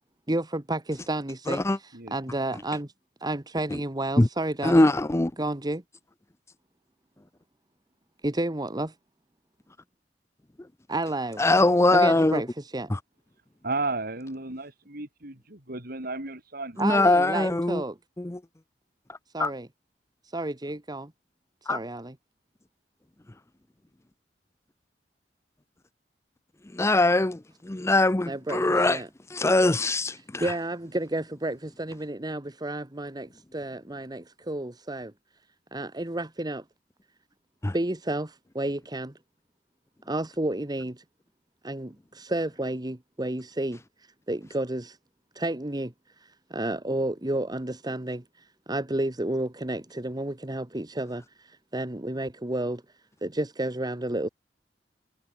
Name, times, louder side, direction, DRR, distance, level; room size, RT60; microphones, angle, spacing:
voice 1, 0.3-2.9 3.2-4.9 5.4-5.8 8.2-8.9 10.9-11.4 11.9-12.9 16.8-18.0 19.3-19.7 20.3-21.1 21.7-22.1 28.3-29.1 30.4-35.1 35.7-36.6 37.7-39.1 40.1-41.0 41.6-43.8 44.3-45.0 45.3-45.9 46.2-48.2 48.7-52.8 53.2-54.3, right 1 dB, 25° right, 1.4 m, -31 dB
voice 2, 1.5-1.8 3.7-3.8 4.2-4.3 4.6-5.3 11.4-12.4 12.9-13.0 16.8-17.8 18.2-18.4 19.1-19.5 21.7-21.8 26.7-29.0 29.3-30.5 37.6-37.7, left 2 dB, 15° left, 0.6 m, -22 dB
voice 3, 13.6-16.8, right 3 dB, 55° right, 4.5 m, -33 dB
head